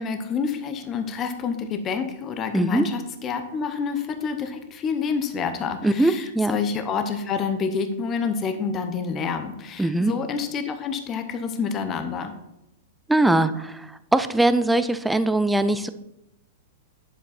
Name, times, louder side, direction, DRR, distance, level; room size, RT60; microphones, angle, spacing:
voice 1, 0.0-12.3, left 5 dB, 20° left, 7 dB, 0.8 m, -28 dB
voice 2, 2.5-2.9 5.8-6.6 9.8-10.1 13.1-15.9, right 2 dB, 5° right, 12 dB, 0.3 m, -21 dB
10.0 x 7.2 x 4.2 m, 0.89 s
supercardioid pair, 170°, 0 cm